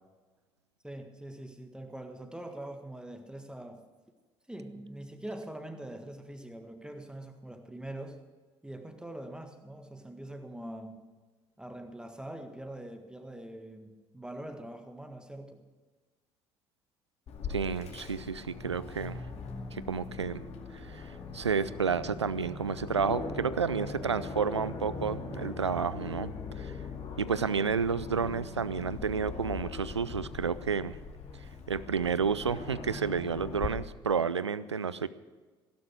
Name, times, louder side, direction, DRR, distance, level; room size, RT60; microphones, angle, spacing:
voice 1, 0.8-3.8 4.5-8.2 8.6-11.0 11.6-15.6, right 1 dB, 5° right, 6 dB, 1.7 m, -43 dB
Aircraft, 17.3-33.7, left 4 dB, 50° left, 2.2 m, -41 dB
voice 2, 17.5-19.3 19.7-20.5 20.7-26.7 27.2-31.0 31.7-35.1, right 6 dB, 85° right, 17 dB, 0.5 m, -31 dB
16.5 x 11.5 x 6.4 m, 1.3 s
figure-of-eight pair, 50°, 14 cm